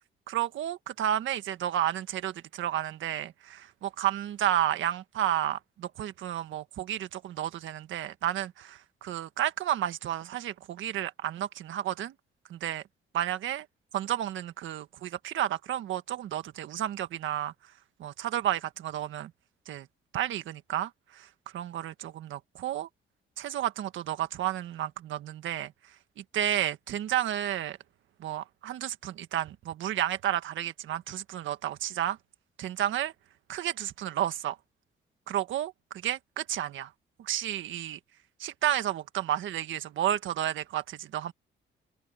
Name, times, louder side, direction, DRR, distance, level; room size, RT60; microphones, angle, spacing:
voice 1, 0.3-12.1 12.5-12.8 13.1-13.6 13.9-17.5 18.0-19.3 19.7-19.9 20.1-21.3 21.5-22.9 23.4-25.7 26.2-27.8 28.2-32.2 32.6-33.1 33.5-34.6 35.3-35.7 36.0-36.9 37.2-38.0 38.4-41.3, right 11 dB, 75° right, 1.7 m, -31 dB
cardioid pair, 90°, 20 cm